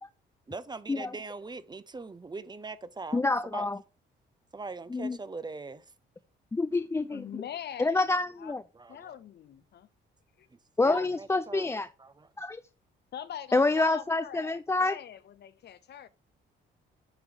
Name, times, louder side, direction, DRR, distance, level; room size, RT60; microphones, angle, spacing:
voice 1, 0.5-3.7 4.5-5.8 8.7-9.2 10.8-11.7 12.0-12.3, right 3 dB, 20° right, 0.7 m, -41 dB
voice 2, 3.1-3.8 4.9-5.2 6.5-7.5 7.8-8.6 10.8-11.9 12.4-12.6 13.5-15.0, left 3 dB, 15° left, 0.4 m, -27 dB
voice 3, 7.1-8.0 8.4-8.5 8.9-9.9 10.4-10.5 10.8-11.1 13.1-16.1, left 9 dB, 60° left, 0.7 m, -42 dB
8.8 x 3.1 x 5.1 m
cardioid pair, 90°, 20 cm